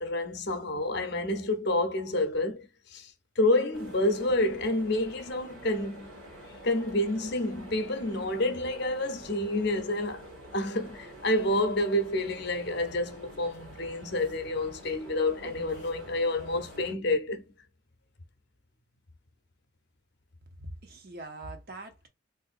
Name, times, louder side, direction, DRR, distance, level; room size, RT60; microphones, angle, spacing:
voice 1, 0.0-3.1 3.4-6.1 6.6-10.3 10.5-17.4, left 1 dB, 55° left, 0.6 m, -29 dB
sound 1, 3.7-16.9, right 1 dB, 85° right, 1.5 m, -48 dB
voice 2, 20.6-22.1, right 2 dB, 50° right, 0.8 m, -42 dB
3.7 x 2.6 x 2.5 m
head